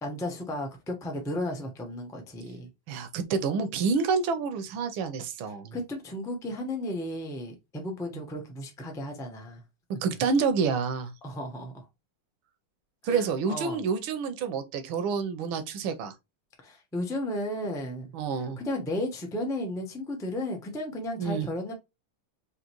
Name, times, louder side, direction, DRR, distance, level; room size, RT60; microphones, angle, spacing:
voice 1, 0.0-2.7 5.5-9.6 11.2-11.8 13.0-13.8 16.6-18.1 18.6-21.7, left 1 dB, 5° left, 0.4 m, -34 dB
voice 2, 2.9-5.7 10.0-11.1 13.0-16.1 18.1-18.6 21.2-21.5, right 5 dB, 75° right, 1.5 m, -28 dB
5.0 x 2.9 x 3.0 m
omnidirectional pair, 2.3 m